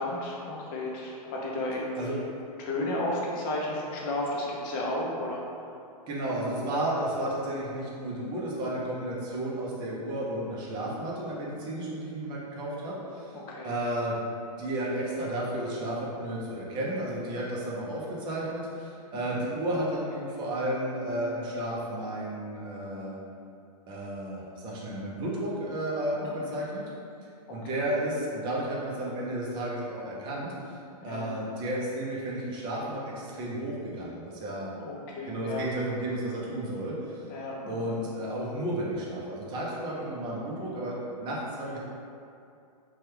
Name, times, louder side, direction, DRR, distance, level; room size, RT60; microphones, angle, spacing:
voice 1, 0.0-2.2 2.6-5.4 13.3-13.8 19.1-19.4 26.2-26.5 27.7-27.8 31.1-31.3 34.8-35.6 37.3-38.0, left 1 dB, 35° left, -3 dB, 0.5 m, -33 dB
voice 2, 2.0-2.4 6.1-13.4 13.6-14.2 14.6-23.2 23.9-26.8 27.5-30.8 31.0-34.7 35.3-37.2 37.7-41.8, right 1 dB, 20° right, -5 dB, 0.5 m, -32 dB
2.8 x 2.3 x 3.3 m, 2.6 s
hypercardioid pair, 145°, 20 cm